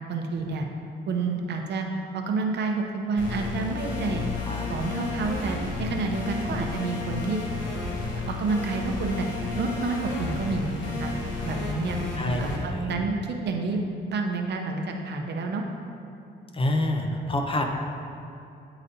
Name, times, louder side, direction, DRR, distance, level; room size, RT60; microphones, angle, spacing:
voice 1, 0.1-0.7 1.1-1.9 2.1-4.2 4.7-7.4 8.3-9.3 9.5-11.1 11.4-12.0 12.4-15.6, right 3 dB, 60° right, 3 dB, 0.7 m, -29 dB
sound 1, 3.2-12.6, left 3 dB, 70° left, 1.2 m, -32 dB
voice 2, 12.2-12.9 16.5-17.6, left 1 dB, 25° left, 3 dB, 0.7 m, -27 dB
9.8 x 4.0 x 2.7 m, 2.8 s
cardioid pair, 90°, 20 cm